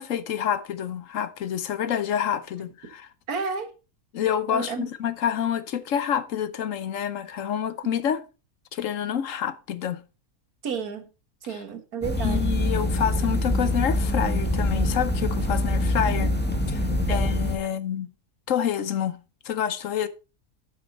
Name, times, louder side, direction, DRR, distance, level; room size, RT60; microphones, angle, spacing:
voice 1, 0.0-3.1 4.1-8.2 8.7-10.0 11.5-11.6 12.2-16.3 16.7-18.1 18.5-19.2 19.4-20.1, left 9 dB, 65° left, 1.1 m, -28 dB
voice 2, 3.3-3.7 4.5-4.9 10.6-11.1 11.4-12.4 16.1-16.3 17.1-17.2, right 5 dB, 80° right, 1.9 m, -31 dB
sound 1, 12.0-17.6, left 1 dB, 5° left, 1.5 m, -24 dB
9.4 x 8.3 x 4.1 m
omnidirectional pair, 1.6 m